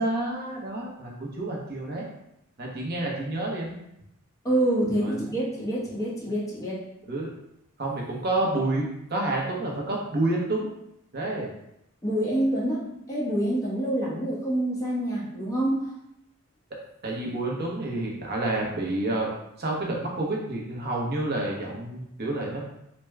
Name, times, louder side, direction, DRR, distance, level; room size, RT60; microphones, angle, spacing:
voice 1, 0.0-2.1 2.6-3.8 5.0-5.1 7.1-7.3 7.8-10.7 11.1-11.5 17.0-19.3 19.6-22.6, right 2 dB, 50° right, -2 dB, 0.8 m, -29 dB
voice 2, 4.4-6.8 12.0-15.9, right 1 dB, 15° left, -6 dB, 1.0 m, -27 dB
3.4 x 2.2 x 3.2 m, 0.80 s
head